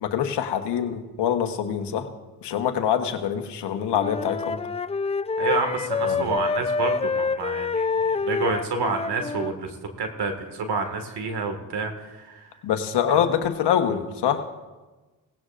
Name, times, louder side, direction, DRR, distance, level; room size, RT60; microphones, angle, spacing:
voice 1, 0.0-2.1 2.4-4.6 6.0-6.4 12.6-14.5, left 9 dB, 75° left, 7 dB, 1.3 m, -25 dB
Wind instrument woodwind instrument, 3.9-9.6, left 4 dB, 15° left, 0.4 m, -27 dB
voice 2, 5.4-12.5 13.1-13.2, right 4 dB, 70° right, 5 dB, 2.0 m, -29 dB
18.0 x 16.5 x 2.6 m, 1.2 s
supercardioid pair, 65°, 41 cm